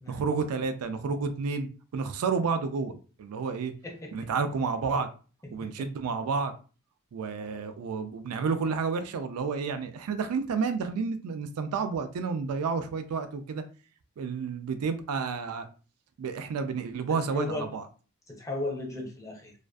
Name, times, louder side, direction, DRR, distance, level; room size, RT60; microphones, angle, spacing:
voice 1, 0.1-3.7 4.1-5.1 5.5-6.5 7.1-13.6 14.2-15.7 16.2-17.8, right 5 dB, 80° right, 9 dB, 0.3 m, -30 dB
voice 2, 3.8-4.1 5.6-5.7 17.1-17.7 18.3-19.5, left 2 dB, 15° left, 0 dB, 0.5 m, -35 dB
2.4 x 2.4 x 2.2 m, 0.37 s
head